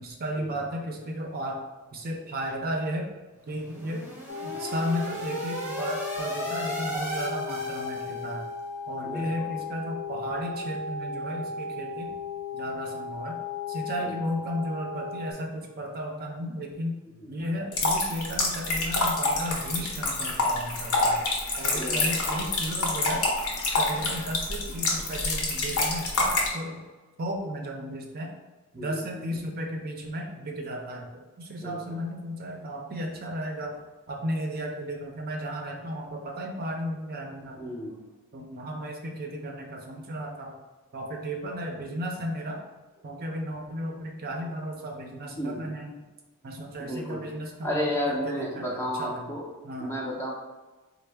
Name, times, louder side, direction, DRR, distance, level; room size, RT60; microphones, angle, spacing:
voice 1, 0.0-1.6 1.9-3.1 3.5-8.5 8.9-12.1 12.5-13.4 13.7-16.9 17.3-21.2 21.6-23.2 23.8-26.8 27.2-28.3 28.7-33.8 34.1-37.7 38.3-40.6 40.9-42.6 43.0-45.9 46.4-49.3 49.6-49.9, equal, 45° right, 1 dB, 0.5 m, -34 dB
sound 1, 3.5-8.5, equal, 10° right, 0.8 m, -36 dB
sound 2, 4.3-15.3, left 4 dB, 65° left, 0.4 m, -36 dB
voice 2, 9.0-9.5 14.0-14.2 17.2-17.5 21.7-22.1 22.3-22.6 28.7-29.4 31.6-32.0 37.6-38.0 45.4-45.7 46.8-47.3 47.6-49.5 49.8-50.3, equal, 10° left, -2 dB, 0.5 m, -33 dB
sound 3, 17.7-26.5, left 2 dB, 85° left, 0.8 m, -27 dB
4.2 x 2.1 x 3.3 m, 1.2 s
head